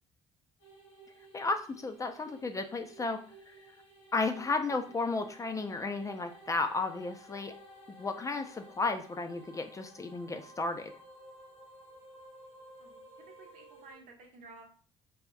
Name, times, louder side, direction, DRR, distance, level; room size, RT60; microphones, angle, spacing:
sound 1, 0.6-13.9, right 1 dB, 80° left, 1.2 m, -54 dB
voice 1, 1.3-3.2 3.5-3.6 4.1-7.5 8.0-10.9, left 3 dB, 20° left, 6 dB, 0.4 m, -33 dB
voice 2, 12.8-14.6, right 3 dB, 60° right, 2 dB, 0.8 m, -54 dB
3.4 x 2.1 x 2.4 m, 0.41 s
hypercardioid pair, 55°, 14 cm